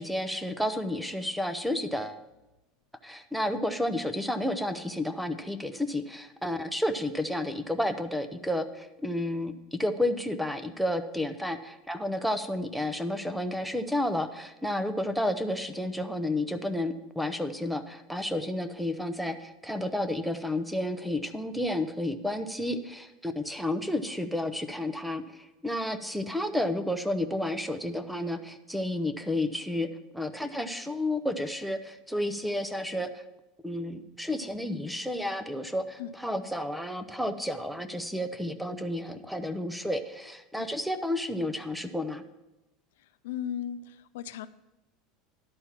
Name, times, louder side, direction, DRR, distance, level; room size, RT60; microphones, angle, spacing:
voice 1, 0.0-2.2 3.0-29.9 30.1-33.2 33.6-42.2, left 1 dB, ahead, 10 dB, 0.6 m, -31 dB
voice 2, 43.2-44.5, left 9 dB, 90° left, 12 dB, 0.5 m, -36 dB
11.0 x 4.4 x 7.2 m, 1.0 s
supercardioid pair, 140°, 0 cm